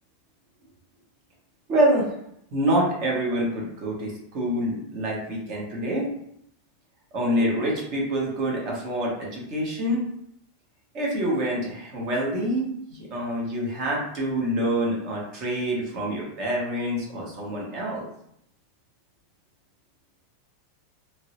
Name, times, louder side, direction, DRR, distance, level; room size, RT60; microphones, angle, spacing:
voice 1, 1.7-2.1 2.5-6.1 7.1-10.0 10.9-18.0, right 1 dB, 35° right, -3 dB, 1.0 m, -26 dB
3.0 x 2.6 x 3.0 m, 0.74 s
supercardioid pair, 165°, 0 cm